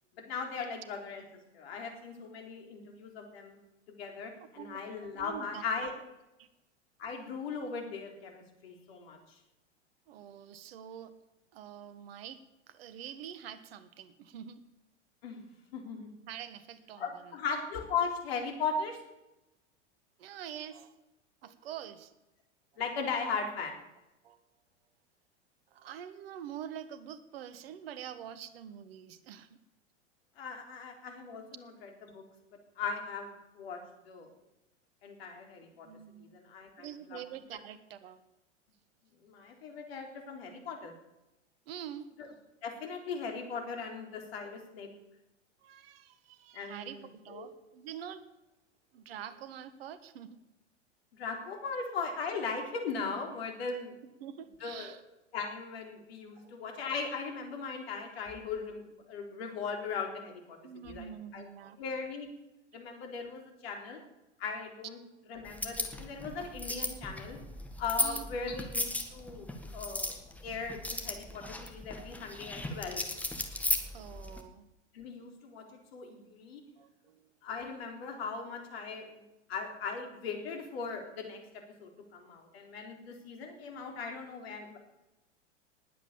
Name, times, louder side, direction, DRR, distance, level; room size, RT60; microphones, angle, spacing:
voice 1, 0.2-1.2 1.5-3.6 3.9-5.9 7.0-9.2 15.2-15.4 15.7-16.1 17.0-19.0 22.8-23.8 30.4-32.2 32.8-33.8 34.1-34.3 35.0-35.9 36.2-37.2 39.2-40.9 42.2-42.3 42.6-44.9 46.5-47.5 51.1-53.9 54.6-54.9 55.3-60.6 60.8-61.4 61.8-62.3 62.7-64.0 64.4-65.0 65.3-67.4 67.8-70.1 70.4-73.0 74.9-76.6 77.4-81.4 81.8-84.8, left 5 dB, 55° left, 3 dB, 3.8 m, -38 dB
voice 2, 4.4-4.8 5.1-5.7 6.4-6.5 10.1-11.1 11.5-12.4 12.7-14.6 16.3-17.3 20.2-20.9 21.4-22.1 24.2-24.4 25.7-29.5 35.8-36.3 36.8-38.2 41.7-42.1 45.6-48.2 48.9-50.4 54.2-55.0 56.4-56.5 60.6-61.8 64.0-64.1 68.0-68.7 72.0-72.1 73.9-74.6 76.8-77.3, right 9 dB, 55° right, 13 dB, 1.4 m, -46 dB
sound 1, 65.5-74.4, left 2 dB, 5° left, 1.7 m, -36 dB
19.5 x 8.5 x 7.3 m, 0.95 s
figure-of-eight pair, 90°, 36 cm